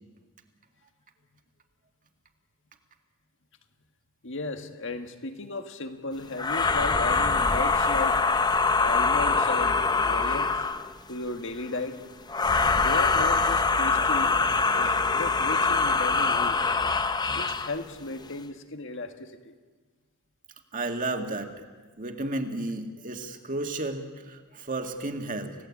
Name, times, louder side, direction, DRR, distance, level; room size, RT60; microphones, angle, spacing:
voice 1, 4.2-8.2 8.8-10.7 11.1-12.0 12.7-14.3 14.7-16.6 17.3-19.6, left 2 dB, 60° left, 7 dB, 1.7 m, -35 dB
sound 1, 6.4-10.9 12.3-17.8, left 4 dB, 20° left, 0.7 m, -24 dB
voice 2, 20.7-21.6 22.0-25.5, right 2 dB, 40° right, 5 dB, 2.1 m, -32 dB
30.0 x 17.0 x 8.6 m, 1.4 s
head